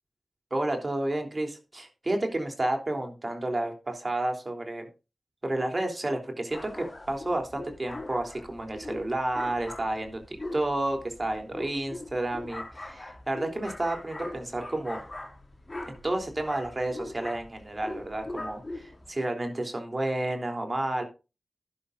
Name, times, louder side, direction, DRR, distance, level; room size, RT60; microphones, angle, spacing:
voice 1, 0.5-4.9 5.4-15.0 15.8-21.0, right 1 dB, 45° right, 4 dB, 3.3 m, -31 dB
sound 1, 6.5-19.1, left 2 dB, 35° left, 4.9 m, -41 dB
11.5 x 11.0 x 2.6 m, 0.29 s
cardioid pair, 40°, 0 cm